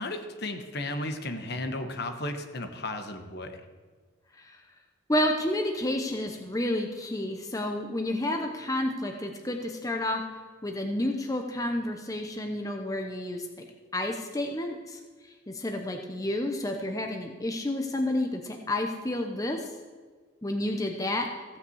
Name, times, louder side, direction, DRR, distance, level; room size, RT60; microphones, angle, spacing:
voice 1, 0.0-3.6, left 2 dB, 55° left, 6 dB, 1.2 m, -34 dB
voice 2, 5.1-10.2 10.6-13.6 13.9-15.0 15.5-19.7 20.4-21.3, left 1 dB, 15° left, 3 dB, 0.8 m, -30 dB
15.5 x 5.9 x 7.9 m, 1.4 s
head